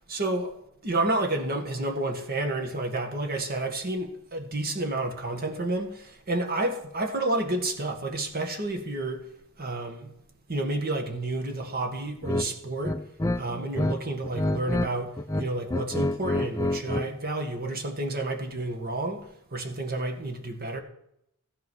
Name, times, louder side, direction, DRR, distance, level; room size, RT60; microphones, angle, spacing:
voice 1, 0.1-0.6 0.8-9.2 9.6-10.1 10.5-13.0 13.4-20.8, right 2 dB, 45° right, 1.9 m, -30 dB
sound 1, 12.2-12.5 12.8-14.0 14.2-14.9 15.2-17.1, left 1 dB, 15° left, 0.5 m, -27 dB
15.0 x 8.5 x 6.4 m
head